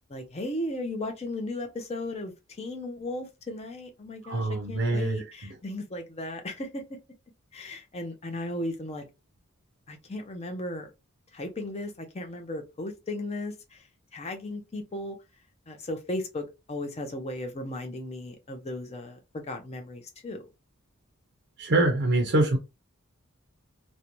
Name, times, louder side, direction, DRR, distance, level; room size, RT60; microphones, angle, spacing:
voice 1, 0.1-6.8 7.5-9.0 9.9-10.9 11.3-13.8 14.1-15.2 15.7-20.4, left 1 dB, 30° left, 0.5 m, -36 dB
voice 2, 4.2-5.2 21.6-22.6, right 2 dB, 50° right, 0.5 m, -24 dB
2.5 x 2.1 x 2.9 m
head